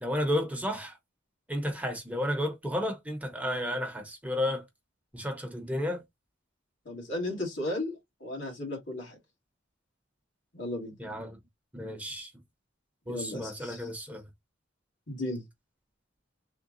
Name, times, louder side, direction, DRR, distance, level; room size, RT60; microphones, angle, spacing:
voice 1, 0.0-1.0 1.5-4.6 5.1-6.0 11.0-11.4 11.7-12.3 13.1-14.2, left 1 dB, 10° right, 0.8 m, -32 dB
voice 2, 6.9-9.2 10.5-11.0 13.1-13.9 15.1-15.4, left 1 dB, 75° left, 2.2 m, -35 dB
3.7 x 2.2 x 3.9 m
head